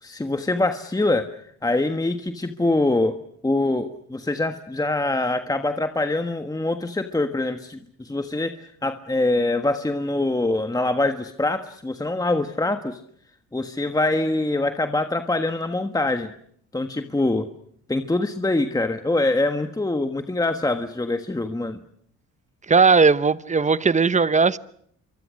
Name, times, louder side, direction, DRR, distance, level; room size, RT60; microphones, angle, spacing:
voice 1, 0.0-3.2 3.4-13.0 13.5-16.3 16.7-17.5 17.9-21.8, left 2 dB, 10° left, 1.5 m, -24 dB
voice 2, 22.7-24.6, right 4 dB, 25° right, 1.0 m, -17 dB
26.5 x 24.0 x 6.4 m
cardioid pair, 90°, 30 cm